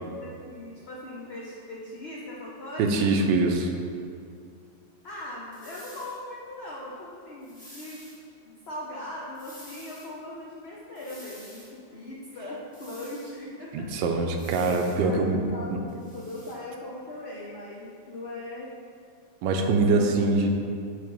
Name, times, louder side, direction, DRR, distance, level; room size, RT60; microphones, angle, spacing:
voice 1, 0.0-3.1 5.0-8.1 8.6-11.6 11.9-13.9 15.0-18.7 19.4-20.5, left 1 dB, 60° left, -5 dB, 0.6 m, -39 dB
voice 2, 2.8-3.7 13.7-15.4 19.4-20.5, right 3 dB, 80° right, 4 dB, 1.3 m, -23 dB
sound 1, 5.5-6.2 7.4-8.2 9.3-10.1 10.9-11.7 12.7-13.4 14.4-15.0 15.9-16.6, equal, 5° left, 1.1 m, -49 dB
6.6 x 3.4 x 5.2 m, 2.3 s
omnidirectional pair, 2.0 m